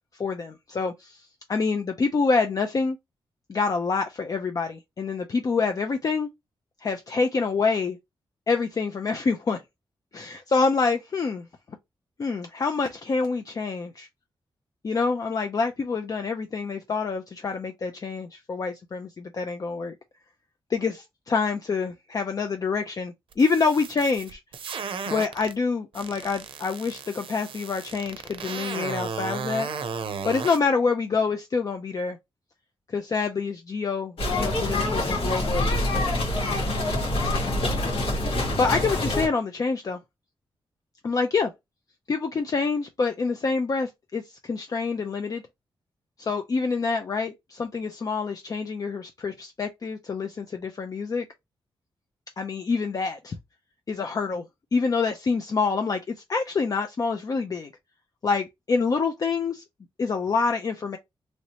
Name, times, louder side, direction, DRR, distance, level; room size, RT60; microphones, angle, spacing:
voice 1, 0.2-3.0 3.5-6.3 6.8-8.0 8.5-9.6 10.1-11.5 12.2-14.1 14.8-19.9 20.7-24.4 25.1-29.7 30.2-32.2 32.9-36.1 38.6-40.0 41.0-41.5 42.1-45.4 46.2-51.3 52.4-53.4 53.9-54.5 54.7-57.7 58.2-59.6 60.0-61.0, left 4 dB, 40° left, 0.4 m, -26 dB
sound 1, 23.3-25.5 25.9-30.6, right 6 dB, 75° right, 0.5 m, -34 dB
sound 2, 34.2-39.3, left 1 dB, 90° left, 1.5 m, -25 dB
3.1 x 2.8 x 2.8 m
wide cardioid pair, 95°, 9 cm